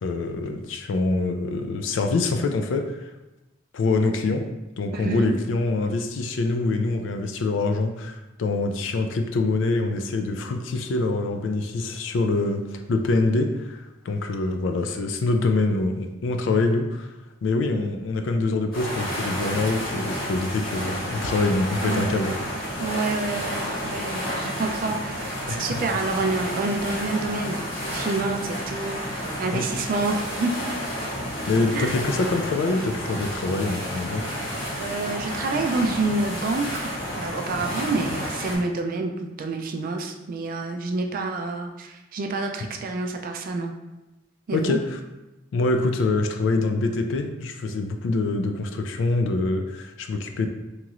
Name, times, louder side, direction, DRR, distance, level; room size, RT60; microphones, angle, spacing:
voice 1, 0.0-3.1 3.7-4.4 4.8-17.1 17.4-22.4 25.5-26.0 29.5-29.6 31.5-34.3 44.5-45.0 45.5-50.5, left 3 dB, 70° left, 6 dB, 0.3 m, -25 dB
voice 2, 4.9-5.4 21.8-22.2 22.8-30.6 31.7-31.9 34.8-43.7 44.5-44.8, right 3 dB, 45° right, 4 dB, 0.3 m, -28 dB
sound 1, 18.7-38.6, equal, 50° left, 1.4 m, -31 dB
3.0 x 2.9 x 2.4 m, 1.0 s
head